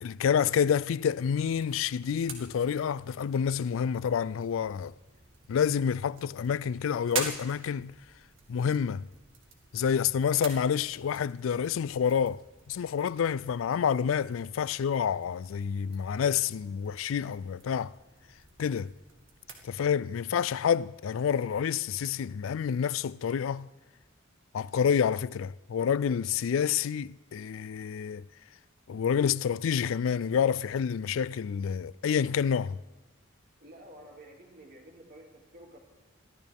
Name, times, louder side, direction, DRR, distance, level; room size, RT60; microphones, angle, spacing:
voice 1, 0.0-4.9 5.5-7.9 8.5-9.1 9.7-12.4 12.7-17.9 18.6-18.9 19.6-23.7 24.5-28.2 28.9-32.8, left 7 dB, 90° left, 0.4 m, -28 dB
sound 1, 1.1-19.9, right 5 dB, 75° right, 2.0 m, -46 dB
voice 2, 33.6-35.8, right 1 dB, 50° right, 2.7 m, -51 dB
23.0 x 14.5 x 3.5 m
head